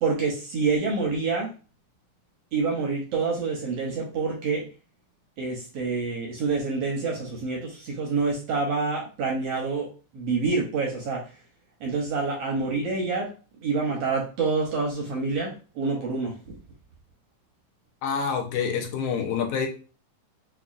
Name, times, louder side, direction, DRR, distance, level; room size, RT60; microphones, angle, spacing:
voice 1, 0.0-1.5 2.5-4.6 5.4-9.9 10.1-11.3 11.8-13.3 13.6-16.6, right 4 dB, 75° right, -1 dB, 1.5 m, -27 dB
voice 2, 18.0-19.7, left 6 dB, 75° left, 1 dB, 1.4 m, -27 dB
5.3 x 2.3 x 2.4 m, 0.36 s
omnidirectional pair, 3.5 m